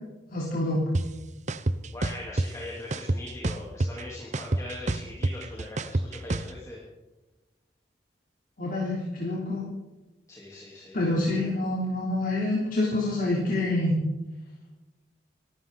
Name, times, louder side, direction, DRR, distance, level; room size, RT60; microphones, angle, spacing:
voice 1, 0.3-0.9 8.6-9.6 10.9-14.0, left 2 dB, 55° left, -4 dB, 3.5 m, -27 dB
sound 1, 0.9-1.0 1.5-2.5 2.9-4.0 4.3-6.5, right 2 dB, 45° right, 0.8 m, -27 dB
voice 2, 1.9-6.8 10.3-11.1, left 1 dB, 20° left, -5 dB, 3.5 m, -41 dB
26.5 x 13.5 x 4.0 m, 1.1 s
head